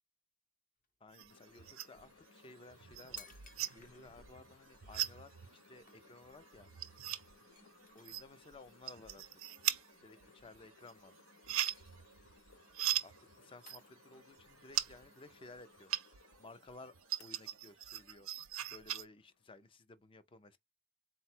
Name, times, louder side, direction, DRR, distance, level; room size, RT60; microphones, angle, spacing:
sound 1, 0.8-0.9 1.4-1.7 2.5-2.6 2.8-4.3 4.9-5.0 5.4-5.6 5.9-6.4 6.7-6.8 7.1-7.2 7.6-8.5 9.6-10.0 10.6-11.3 11.6-12.4 12.8-13.1 13.7-14.3 14.7-16.0 16.3-18.3, left 5 dB, 40° left, 0.8 m, -61 dB
voice 1, 1.0-3.3 3.7-5.3 5.7-6.7 7.9-9.3 10.0-11.1 13.0-16.0 16.4-18.3 18.7-20.6, left 3 dB, 25° left, 0.4 m, -56 dB
sound 2, 1.1-2.1 2.4-16.4 16.7-19.0, right 13 dB, 85° right, 0.5 m, -40 dB
sound 3, 1.3-19.8, left 4 dB, 80° left, 0.8 m, -65 dB
4.0 x 2.1 x 4.3 m
head